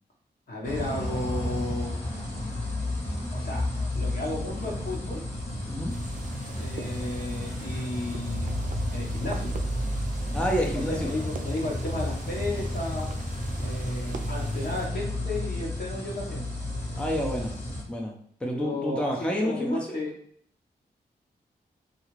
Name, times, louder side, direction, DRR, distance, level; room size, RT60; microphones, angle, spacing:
voice 1, 0.5-1.9 3.3-3.6 3.9-5.2 6.6-8.6 8.9-9.5 10.9-13.1 13.6-16.4 18.5-20.1, left 1 dB, 60° left, -3 dB, 1.1 m, -33 dB
sound 1, 0.6-17.8, left 1 dB, 40° left, 1.2 m, -32 dB
sound 2, 5.9-14.9, right 4 dB, 45° right, 0.4 m, -45 dB
voice 2, 10.3-11.1 16.9-17.5 17.9-18.1 18.4-20.0, equal, 5° left, 0 dB, 0.6 m, -28 dB
2.4 x 2.4 x 3.1 m, 0.63 s
cardioid pair, 45°, 18 cm